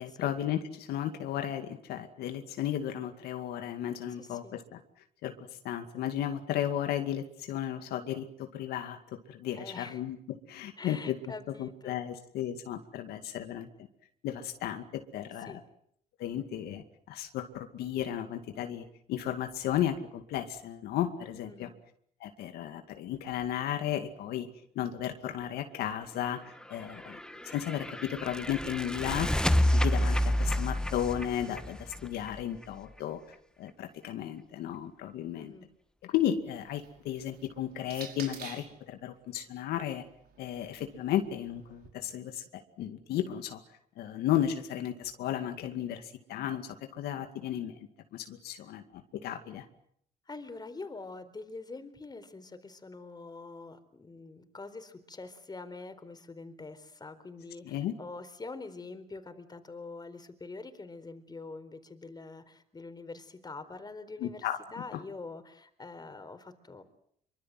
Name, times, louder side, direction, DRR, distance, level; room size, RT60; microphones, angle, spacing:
voice 1, 0.0-4.8 5.2-9.0 9.3-10.2 10.5-11.2 11.6-13.7 14.2-15.6 16.2-21.7 22.2-24.5 24.8-26.4 26.7-27.2 27.4-33.2 33.6-35.5 36.0-40.0 40.4-43.6 44.0-47.8 48.1-49.7 57.6-57.9 64.2-64.6, left 11 dB, 90° left, 7 dB, 2.3 m, -34 dB
voice 2, 4.2-4.5 9.5-10.0 10.8-12.0 15.5-15.6 21.4-21.7 35.3-35.7 50.3-66.8, left 3 dB, 25° left, 10 dB, 4.3 m, -45 dB
sound 1, 26.9-32.6, equal, 5° left, 1.3 m, -29 dB
sound 2, 36.4-38.8 39.8-41.9, right 8 dB, 75° right, 5.5 m, -50 dB
25.5 x 24.5 x 7.8 m, 0.67 s
cardioid pair, 90°, 16 cm